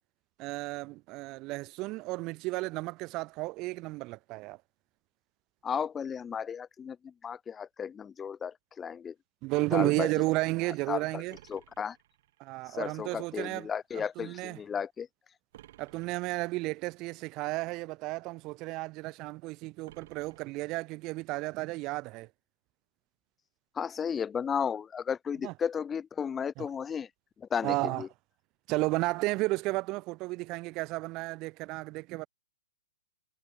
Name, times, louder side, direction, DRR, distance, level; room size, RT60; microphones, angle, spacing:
voice 1, 0.4-4.6 9.4-11.4 12.4-13.7 13.9-14.6 15.8-22.3 25.4-25.5 26.6-26.7 27.6-28.0 28.7-32.3, right 22 dB, 30° right, 0.4 m, -33 dB
voice 2, 5.6-9.1 9.7-10.1 10.9-11.2 11.5-12.0 12.7-15.1 23.8-27.1 27.4-28.1, left 7 dB, 15° left, 0.7 m, -34 dB
sound 1, 11.3-12.7 15.5-16.7 19.8-21.2, right 14 dB, 50° right, 6.4 m, -57 dB
hypercardioid pair, 135°, 0 cm